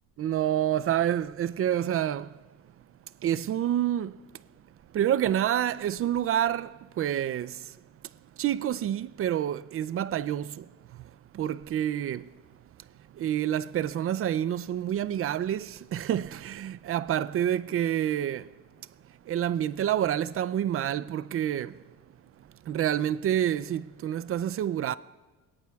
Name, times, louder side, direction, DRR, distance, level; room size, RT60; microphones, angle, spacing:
voice 1, 0.2-2.3 3.2-4.1 4.9-6.7 7.0-7.5 8.4-10.6 11.4-12.2 13.2-18.4 19.3-21.7 22.7-24.9, right 11 dB, 40° right, 0.4 m, -28 dB
22.5 x 17.5 x 2.3 m
cardioid pair, 130°, 35 cm